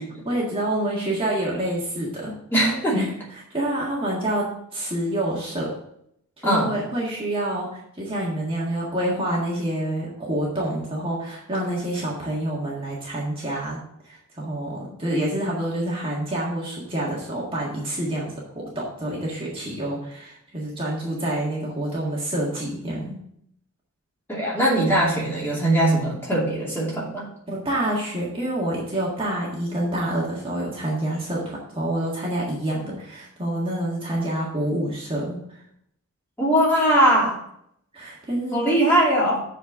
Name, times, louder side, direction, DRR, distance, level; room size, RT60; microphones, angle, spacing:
voice 1, 0.2-2.3 2.9-5.7 6.4-23.2 27.5-35.6 37.9-38.6, right 1 dB, 25° right, -5 dB, 1.7 m, -27 dB
voice 2, 2.5-3.0 6.4-6.8 24.3-27.3 36.4-37.4 38.5-39.4, right 1 dB, 10° left, -6 dB, 2.6 m, -20 dB
7.4 x 4.5 x 7.0 m, 0.73 s
head